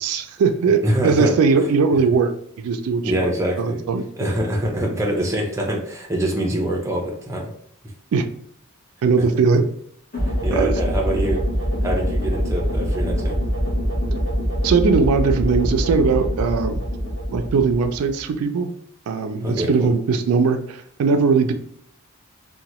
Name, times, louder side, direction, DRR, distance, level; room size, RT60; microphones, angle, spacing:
voice 1, 0.0-3.3 3.6-4.0 8.1-8.3 9.0-9.6 10.5-10.7 14.6-16.8 17.3-18.7 19.1-21.5, right 5 dB, 80° right, 8 dB, 0.3 m, -20 dB
voice 2, 0.8-1.4 3.0-3.9 4.2-7.5 10.4-11.4 11.8-13.4 19.4-19.9, right 1 dB, 15° right, 0 dB, 0.5 m, -24 dB
sound 1, 10.1-18.3, equal, 40° left, 1.0 m, -24 dB
2.8 x 2.2 x 2.9 m, 0.68 s
head